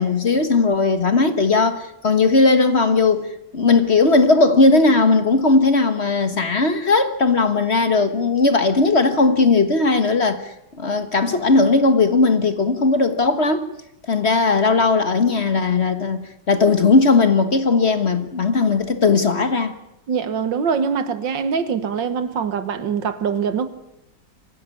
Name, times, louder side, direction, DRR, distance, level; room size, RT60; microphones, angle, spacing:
voice 1, 0.0-3.3 3.5-13.7 14.1-19.7, left 3 dB, 40° left, 1.5 m, -17 dB
voice 2, 20.1-23.7, right 6 dB, 75° right, 2.0 m, -23 dB
24.5 x 16.5 x 9.8 m
omnidirectional pair, 2.0 m